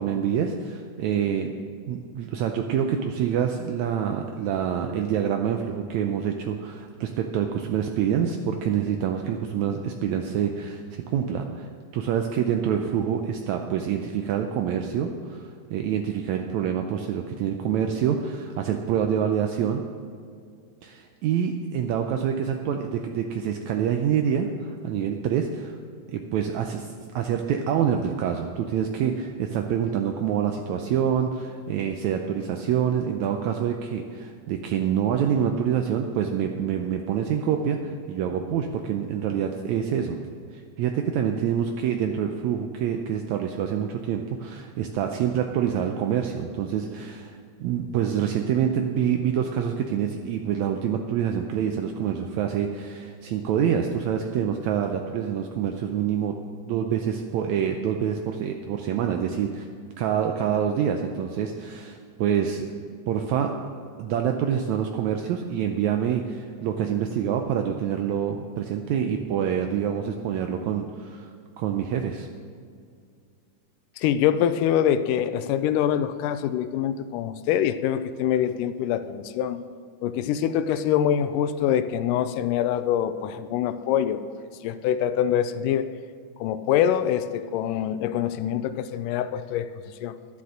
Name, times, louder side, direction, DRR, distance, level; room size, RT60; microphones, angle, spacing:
voice 1, 0.0-1.6 1.8-19.8 20.8-25.8 26.1-40.2 40.5-56.3 56.7-59.7 60.0-62.7 63.1-63.5 64.0-71.3 71.6-72.3, right 8 dB, 80° right, 4 dB, 1.8 m, -26 dB
voice 2, 74.0-79.6 80.0-84.2 84.6-85.9 86.4-89.7 90.0-90.2, left 10 dB, 85° left, 12 dB, 2.2 m, -24 dB
11.5 x 9.6 x 6.4 m, 2.3 s
omnidirectional pair, 3.7 m